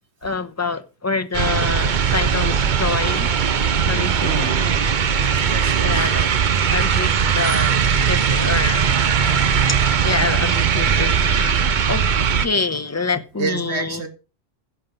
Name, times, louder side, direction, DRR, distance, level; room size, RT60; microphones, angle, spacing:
voice 1, 0.2-3.3 3.9-4.5 5.8-6.3 6.7-8.9 10.0-11.6 11.9-12.1 12.4-14.0, left 4 dB, 15° left, 0.8 m, -26 dB
sound 1, 1.3-12.5, right 7 dB, 50° right, 0.8 m, -19 dB
voice 2, 3.8-4.6 5.5-6.1 6.6-6.7 7.5-8.2 13.4-14.1, right 4 dB, 90° right, 1.9 m, -29 dB
16.0 x 5.9 x 5.1 m
omnidirectional pair, 1.1 m